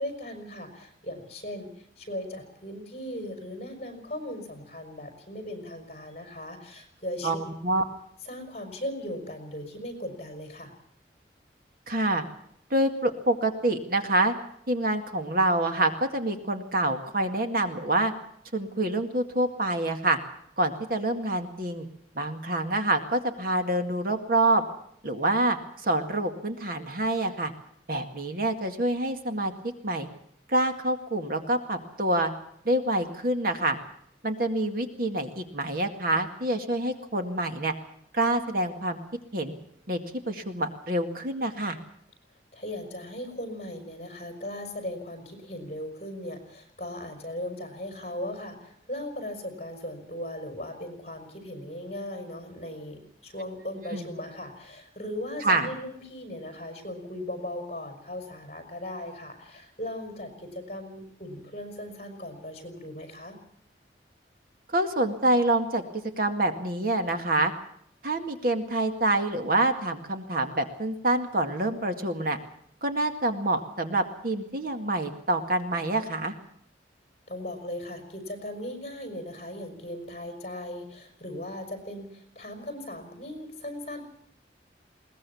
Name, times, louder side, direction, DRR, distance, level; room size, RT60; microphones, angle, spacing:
voice 1, 0.0-7.3 8.2-10.7 42.5-63.4 77.3-84.0, left 1 dB, 35° left, 5 dB, 5.4 m, -38 dB
voice 2, 7.2-7.8 11.9-12.2 12.7-14.3 14.7-18.1 18.5-20.2 20.6-21.9 22.2-24.6 25.0-27.5 27.9-29.5 29.8-30.1 30.5-32.3 32.7-33.8 34.2-37.7 38.1-39.0 39.3-39.5 39.9-40.0 40.3-41.8 53.9-54.1 55.4-55.7 64.7-65.8 66.2-67.5 68.0-72.4 72.8-76.3, right 1 dB, 55° right, 6 dB, 2.1 m, -26 dB
21.5 x 19.0 x 7.1 m, 0.70 s
head